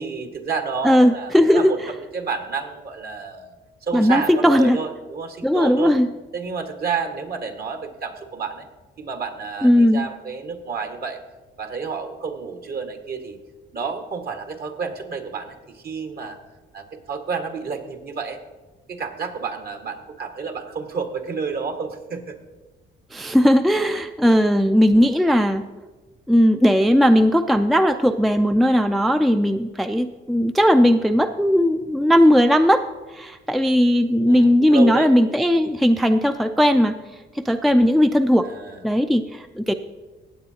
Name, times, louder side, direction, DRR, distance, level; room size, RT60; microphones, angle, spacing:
voice 1, 0.0-1.8 2.1-3.5 3.8-5.9 6.3-8.7 9.0-11.2 11.6-13.4 13.7-16.4 16.7-18.4 18.9-22.4 34.3-35.1 38.5-38.8, right 5 dB, 50° right, 5 dB, 1.5 m, -30 dB
voice 2, 0.8-1.7 3.9-4.8 5.4-6.1 9.6-10.1 23.1-25.6 26.3-32.8 33.1-37.0 37.3-38.5 38.8-39.7, equal, ahead, 8 dB, 0.4 m, -17 dB
16.0 x 8.6 x 2.8 m, 1.2 s
cardioid pair, 90°, 20 cm